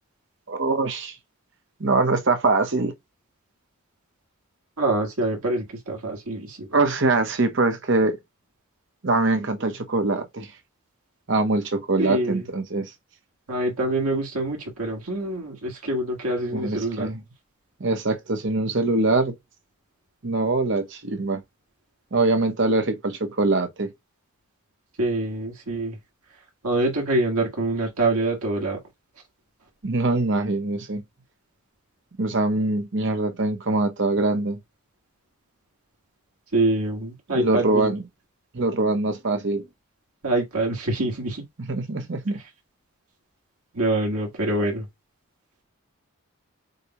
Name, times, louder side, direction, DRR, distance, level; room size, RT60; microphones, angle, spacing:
voice 1, 0.5-1.2 1.8-2.9 6.7-8.2 9.0-10.5 11.3-12.9 16.5-17.2 17.8-19.4 20.2-21.4 22.1-23.9 29.8-31.0 32.2-34.6 37.3-38.0 38.5-39.7 41.7-42.4, right 2 dB, 55° right, 0.9 m, -23 dB
voice 2, 4.8-6.8 12.0-12.5 13.5-17.1 25.0-26.0 26.6-28.8 36.5-37.9 40.2-41.4 43.7-44.9, right 2 dB, 80° right, 1.7 m, -25 dB
6.5 x 2.3 x 3.0 m
head